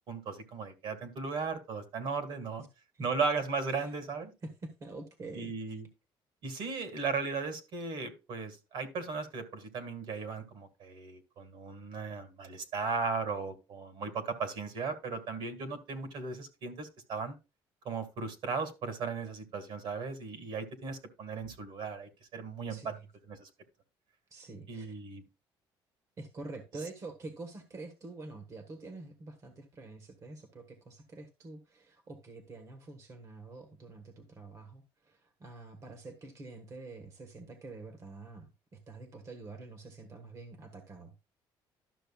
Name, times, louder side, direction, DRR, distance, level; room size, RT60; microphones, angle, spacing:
voice 1, 0.1-2.6 3.0-4.3 5.3-5.9 6.4-17.4 17.9-22.9 23.3-23.5 24.7-25.2, right 4 dB, 60° right, 2.0 m, -36 dB
voice 2, 4.4-5.5 22.7-23.1 24.3-25.0 26.2-41.1, right 3 dB, 35° right, 1.3 m, -47 dB
12.0 x 6.4 x 2.3 m
cardioid pair, 145°, 9 cm